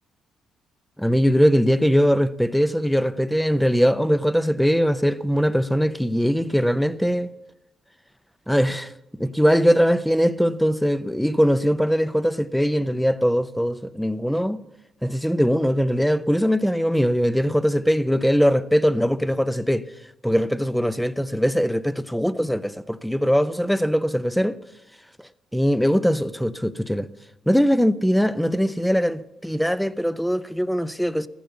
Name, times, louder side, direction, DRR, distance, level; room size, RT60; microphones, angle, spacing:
voice 1, 1.0-7.3 8.5-8.9 9.2-14.6 15.0-19.8 20.2-24.6 25.2-27.1 27.5-31.3, equal, ahead, 0.7 m, -21 dB
14.5 x 10.5 x 8.3 m
cardioid pair, 90°, 0 cm